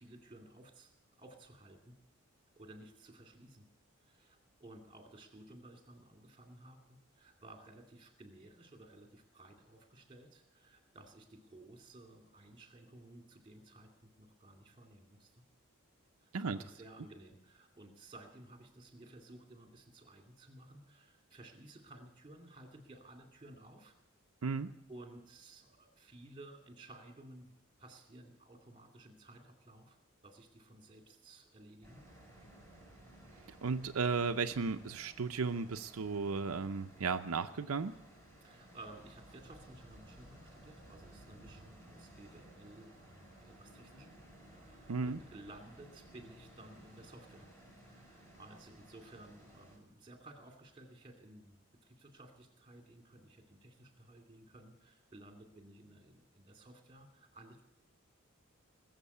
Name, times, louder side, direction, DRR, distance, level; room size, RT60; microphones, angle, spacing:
voice 1, 0.0-2.0 2.6-3.7 4.0-15.4 16.2-23.9 24.9-30.0 30.2-32.0 38.4-44.1 44.4-47.5 47.9-57.6, right 2 dB, 25° right, 3 dB, 2.4 m, -56 dB
voice 2, 24.4-24.7 33.6-38.0 44.9-45.2, right 4 dB, 85° right, 7 dB, 0.6 m, -35 dB
sound 1, 31.8-49.8, right 1 dB, 15° left, 5.6 m, -57 dB
20.0 x 7.5 x 8.4 m, 0.83 s
head